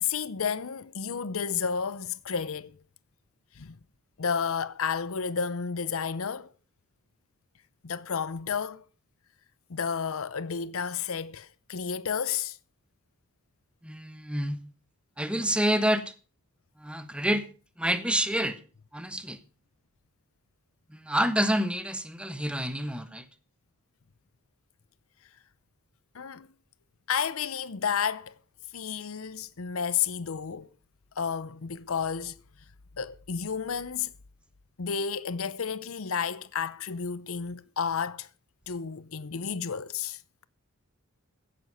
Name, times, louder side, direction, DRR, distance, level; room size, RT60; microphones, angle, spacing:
voice 1, 0.0-2.8 3.6-3.8 4.2-6.5 7.8-8.8 9.7-12.6 26.1-26.5 27.1-28.3 28.7-30.7 31.2-32.4 33.0-34.1 34.8-38.3 38.7-40.2, left 6 dB, 70° left, 0.7 m, -31 dB
voice 2, 13.8-14.6 15.2-16.1 16.8-17.5 17.8-18.6 18.9-19.4 20.9-23.3, equal, 5° right, 1.1 m, -28 dB
16.0 x 9.4 x 5.6 m
head